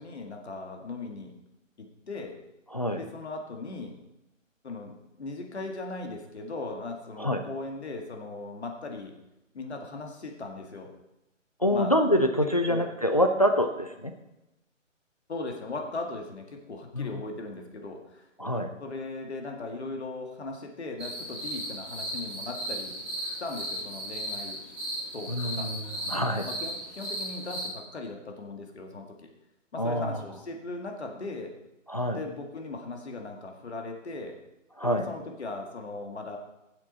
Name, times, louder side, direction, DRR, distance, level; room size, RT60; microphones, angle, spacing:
voice 1, 0.0-1.3 1.8-2.4 3.0-4.0 4.6-9.1 9.5-10.9 11.7-12.0 12.7-12.9 15.3-18.3 18.8-23.0 23.4-24.6 25.1-25.7 26.5-29.3 29.7-31.5 32.1-34.4 34.8-36.4, left 3 dB, 55° left, 2 dB, 2.2 m, -38 dB
voice 2, 2.7-3.0 7.2-7.4 11.6-14.1 16.9-17.2 18.4-18.7 25.3-26.5 29.8-30.2 31.9-32.2 34.8-35.0, equal, 30° left, 5 dB, 0.5 m, -26 dB
sound 1, 21.0-27.7, right 1 dB, 5° right, 3.4 m, -36 dB
18.0 x 7.7 x 4.2 m, 0.94 s
hypercardioid pair, 170°, 38 cm